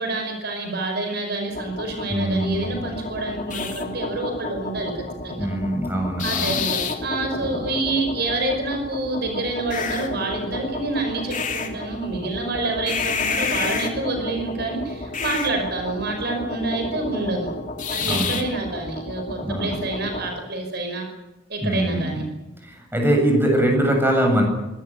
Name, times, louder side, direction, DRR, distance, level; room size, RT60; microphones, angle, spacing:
voice 1, 0.0-5.5 6.2-17.5 17.9-21.1 21.5-22.2, right 2 dB, 60° right, 4 dB, 5.3 m, -27 dB
sound 1, 1.5-20.3, left 4 dB, 45° left, 2.8 m, -30 dB
voice 2, 2.1-2.8 5.3-6.6 7.4-7.6 18.1-18.3 19.4-19.8 21.6-22.1 22.6-24.4, right 1 dB, 10° right, 3 dB, 7.7 m, -22 dB
25.0 x 18.0 x 8.9 m, 1.0 s
head